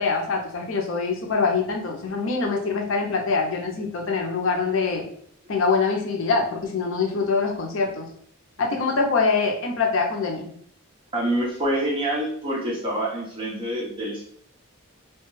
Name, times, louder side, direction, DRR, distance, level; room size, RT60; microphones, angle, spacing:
voice 1, 0.0-5.0 5.5-8.1 8.6-10.5, left 4 dB, 65° left, 1 dB, 0.5 m, -24 dB
voice 2, 11.1-14.2, right 1 dB, 25° right, -3 dB, 0.8 m, -26 dB
2.9 x 2.2 x 3.1 m, 0.63 s
head